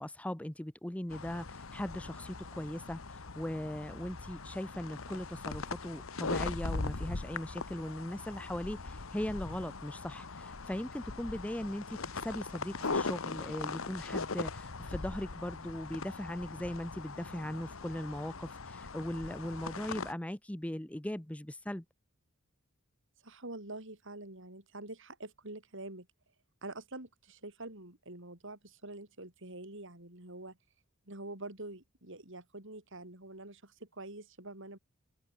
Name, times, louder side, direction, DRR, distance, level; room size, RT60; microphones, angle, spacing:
voice 1, 0.0-21.8, left 1 dB, 5° left, 0.7 m, -39 dB
sound 1, 1.1-20.1, left 3 dB, 70° left, 1.3 m, -40 dB
voice 2, 23.2-26.1 26.6-30.6 31.1-34.8, right 2 dB, 65° right, 6.0 m, -46 dB
open air
head